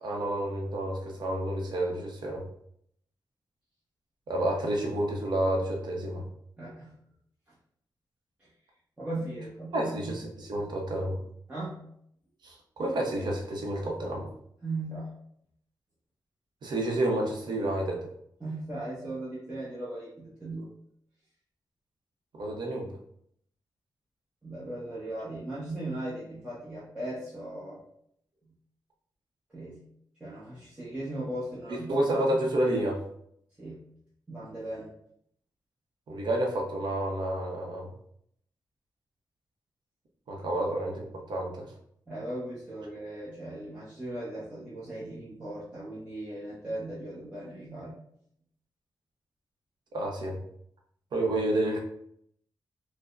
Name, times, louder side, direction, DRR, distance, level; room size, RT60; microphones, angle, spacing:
voice 1, 0.0-2.4 4.3-6.2 9.7-11.2 12.4-14.3 16.6-18.1 22.4-22.9 31.9-33.0 36.1-37.9 40.3-41.7 49.9-50.4 51.1-51.8, right 1 dB, 70° right, 0 dB, 0.7 m, -29 dB
voice 2, 6.6-7.0 9.0-10.4 11.5-11.9 14.6-15.1 18.4-20.7 24.4-27.8 28.4-28.5 29.5-29.9 30.2-32.0 33.6-33.9 34.3-34.9 42.1-47.9, right 1 dB, 15° right, -10 dB, 0.8 m, -38 dB
4.6 x 2.1 x 2.4 m, 0.70 s
wide cardioid pair, 170°, 8 cm